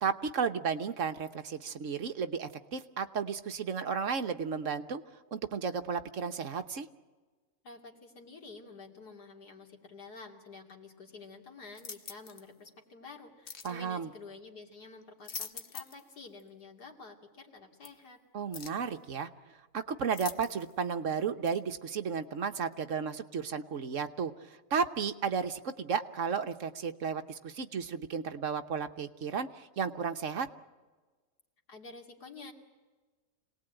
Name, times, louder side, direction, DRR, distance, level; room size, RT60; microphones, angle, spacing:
voice 1, 0.0-5.0 5.3-6.9 13.6-14.1 18.3-19.3 19.7-24.3 24.7-30.5, right 6 dB, 55° right, 7 dB, 1.3 m, -33 dB
voice 2, 7.6-18.2 31.7-32.5, left 4 dB, 90° left, 2 dB, 3.3 m, -50 dB
sound 1, 11.7-12.5 13.5-13.8 15.0-16.1 16.4-16.5 17.8-17.9 18.5-18.9 20.1-20.8 21.4-21.6, left 6 dB, 45° left, 1.3 m, -44 dB
27.0 x 19.0 x 9.0 m, 1.3 s
omnidirectional pair, 1.7 m